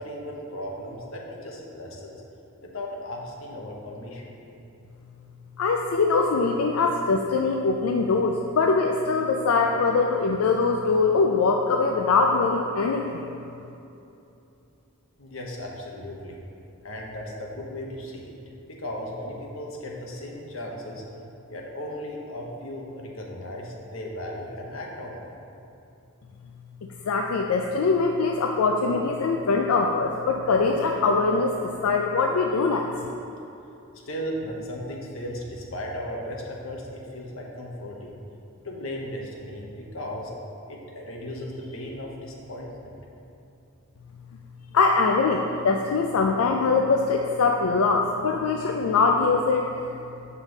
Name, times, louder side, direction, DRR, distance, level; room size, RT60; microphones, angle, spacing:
voice 1, 0.0-2.2 2.6-4.3 15.2-16.4 16.8-18.4 18.7-21.0 21.5-25.3 34.1-38.2 38.6-40.3 40.7-42.9, left 1 dB, 70° left, -1 dB, 1.1 m, -36 dB
voice 2, 5.6-13.2 27.1-31.6 31.8-32.9 44.7-49.6, left 4 dB, 90° left, 2 dB, 0.4 m, -22 dB
8.0 x 5.5 x 4.0 m, 2.8 s
head